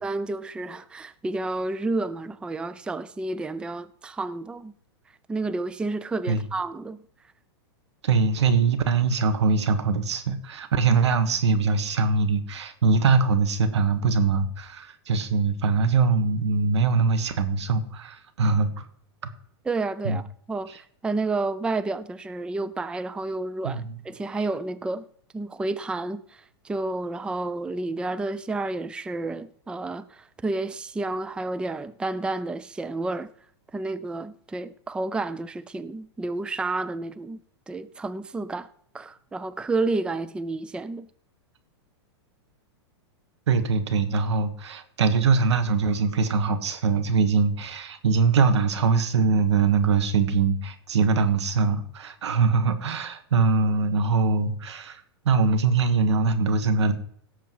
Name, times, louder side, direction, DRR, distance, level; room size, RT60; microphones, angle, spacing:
voice 1, 0.0-4.7 5.3-7.0 19.6-25.1 25.3-33.3 33.7-37.4 37.7-38.7 38.9-41.1, right 2 dB, 5° right, 0.4 m, -30 dB
voice 2, 8.0-18.9 20.0-20.2 23.6-23.9 43.5-56.9, right 4 dB, 85° right, 1.7 m, -22 dB
17.0 x 7.0 x 4.8 m
hypercardioid pair, 130°, 14 cm